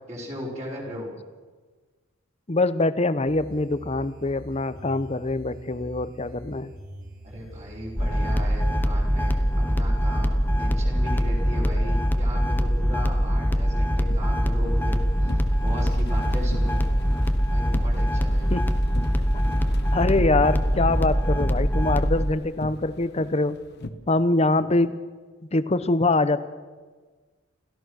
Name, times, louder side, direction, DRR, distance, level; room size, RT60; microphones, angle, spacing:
voice 1, 0.1-1.1 7.2-9.4 9.7-17.0 17.5-18.5, equal, 35° right, -4 dB, 4.8 m, -37 dB
voice 2, 2.5-6.7 18.5-18.7 19.3-19.6 19.9-23.6 24.1-25.0 25.5-26.4, left 2 dB, 30° left, 14 dB, 0.8 m, -24 dB
sound 1, 3.3-19.3, equal, 80° right, 6.2 m, -44 dB
sound 2, 8.0-22.3, equal, 10° left, 1.0 m, -23 dB
sound 3, 14.1-23.9, left 1 dB, 55° left, 1.2 m, -41 dB
29.0 x 14.0 x 6.4 m, 1.4 s
head